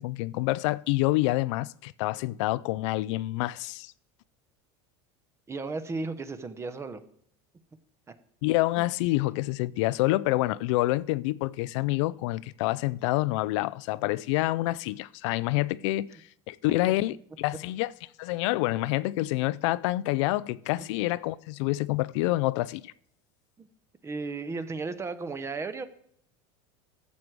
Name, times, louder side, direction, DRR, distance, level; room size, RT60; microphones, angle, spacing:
voice 1, 0.0-3.9 8.4-16.2 16.5-17.9 18.2-22.9, left 18 dB, 75° left, 0.4 m, -27 dB
voice 2, 5.5-7.0 8.1-8.2 8.8-8.9 23.6-23.7 24.0-25.8, right 3 dB, 15° right, 0.8 m, -34 dB
14.0 x 7.6 x 4.8 m
supercardioid pair, 130°, 16 cm